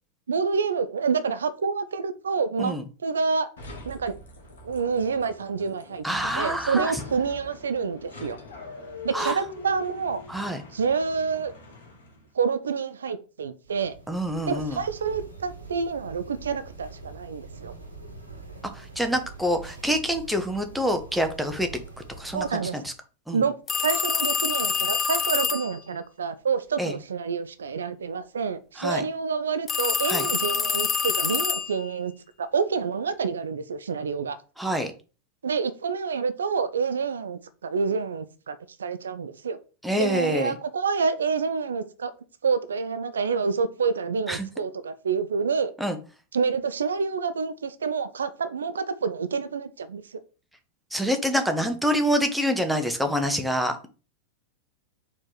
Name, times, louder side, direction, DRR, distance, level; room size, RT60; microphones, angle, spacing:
voice 1, 0.3-2.8 3.0-3.5 3.9-4.1 4.6-6.0 6.4-8.4 9.0-10.2 10.7-11.5 12.3-13.9 14.5-17.7 22.3-22.8 23.3-32.1 32.4-34.4 35.4-39.6 40.0-42.1 42.4-45.7 46.3-50.2, right 5 dB, 70° right, 0.3 m, -28 dB
sound 1, 3.6-12.3, left 2 dB, 65° left, 1.3 m, -43 dB
voice 2, 6.0-6.9 9.1-9.4 10.3-10.6 14.1-14.8 18.7-21.7 22.2-22.9 23.3-23.4 26.8-26.9 28.8-29.0 30.1-30.3 34.6-34.9 39.8-40.5 44.3-44.5 45.8-46.0 50.9-53.9, equal, ahead, 0.7 m, -26 dB
sound 2, 13.6-22.5, right 3 dB, 90° left, 1.1 m, -44 dB
sound 3, 23.7-25.8 29.7-31.9, left 6 dB, 20° left, 0.3 m, -26 dB
4.4 x 3.0 x 3.9 m
figure-of-eight pair, 90°, 0 cm